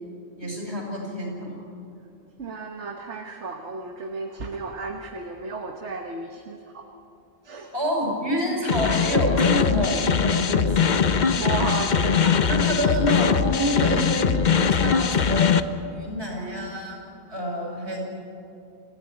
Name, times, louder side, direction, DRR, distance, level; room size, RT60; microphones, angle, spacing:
voice 1, 0.4-1.5 7.7-11.0 12.5-14.3 14.7-15.6 15.9-17.0 17.3-18.0, equal, 70° right, -1 dB, 6.2 m, -27 dB
voice 2, 2.4-6.8 7.4-7.7 11.3-12.8, right 4 dB, 90° right, 3 dB, 1.6 m, -33 dB
sound 1, 8.7-15.6, left 6 dB, 45° left, 0.8 m, -21 dB
27.5 x 15.5 x 9.9 m, 2.7 s
omnidirectional pair, 1.1 m